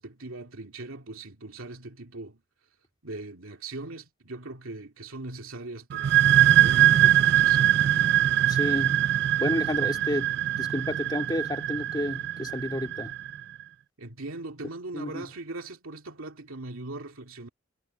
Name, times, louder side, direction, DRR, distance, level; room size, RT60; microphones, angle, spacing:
voice 1, 0.0-2.4 3.0-6.3 6.6-7.9 14.0-17.5, right 2 dB, 80° right, 2.4 m, -40 dB
sound 1, 5.9-13.4, right 12 dB, 50° right, 0.3 m, -22 dB
voice 2, 8.5-9.0 9.4-13.1 14.9-15.3, left 1 dB, 20° left, 2.3 m, -31 dB
head